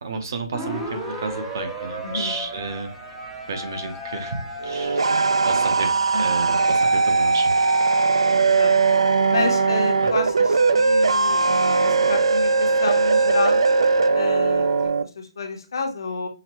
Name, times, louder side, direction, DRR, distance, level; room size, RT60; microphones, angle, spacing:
voice 1, 0.0-2.9 3.5-8.1 10.0-10.1, right 3 dB, 40° right, 5 dB, 0.7 m, -32 dB
sound 1, 0.5-14.9, equal, 5° right, 0.5 m, -36 dB
voice 2, 2.0-2.4 6.1-6.2 8.5-8.7 9.3-11.4 11.8-13.6 14.1-16.3, left 3 dB, 50° left, 3 dB, 0.9 m, -29 dB
sound 2, 4.6-15.0, right 4 dB, 85° right, 0.3 m, -19 dB
5.8 x 2.2 x 2.9 m, 0.33 s
hypercardioid pair, 175°, 3 cm